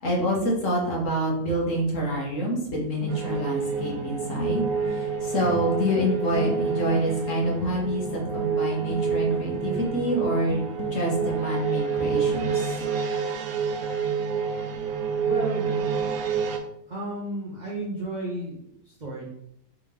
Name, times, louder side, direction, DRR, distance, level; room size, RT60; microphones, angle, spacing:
voice 1, 0.0-10.6 10.9-12.9, equal, 55° left, -3 dB, 1.4 m, -27 dB
sound 1, 3.0-11.3, left 3 dB, 85° left, 1.2 m, -39 dB
sound 2, 3.1-16.6, right 6 dB, 75° right, 1.0 m, -28 dB
voice 2, 5.3-5.6 15.2-16.0 16.9-19.3, right 2 dB, 40° right, -5 dB, 0.6 m, -33 dB
3.6 x 3.4 x 3.3 m, 0.75 s
omnidirectional pair, 1.6 m